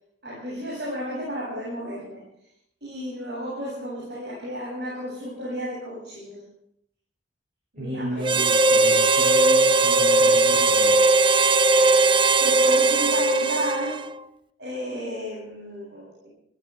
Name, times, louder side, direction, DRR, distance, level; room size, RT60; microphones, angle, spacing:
voice 1, 0.2-2.2 2.8-6.4 7.7-8.5 12.1-14.0 14.6-16.3, equal, 70° right, -6 dB, 7.9 m, -33 dB
voice 2, 7.8-11.0, right 1 dB, 45° right, -4 dB, 6.5 m, -34 dB
Harmonica, 8.2-14.2, right 3 dB, 30° right, 0.6 m, -19 dB
25.5 x 15.5 x 3.5 m, 0.74 s
head